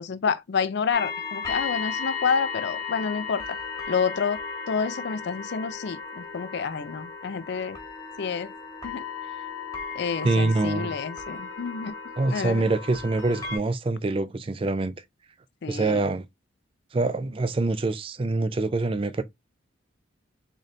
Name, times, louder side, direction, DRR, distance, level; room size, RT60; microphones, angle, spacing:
voice 1, 0.0-3.4 3.9-4.4 4.7-7.8 8.2-8.5 8.8-9.0 9.9-11.9 12.3-12.6 15.6-16.0, left 6 dB, 55° left, 0.4 m, -28 dB
sound 1, 0.9-13.6, left 5 dB, 15° left, 1.2 m, -35 dB
voice 2, 10.2-10.9 12.2-15.0 15.7-16.2 16.9-19.2, right 3 dB, 25° right, 0.4 m, -25 dB
3.8 x 3.3 x 2.6 m
head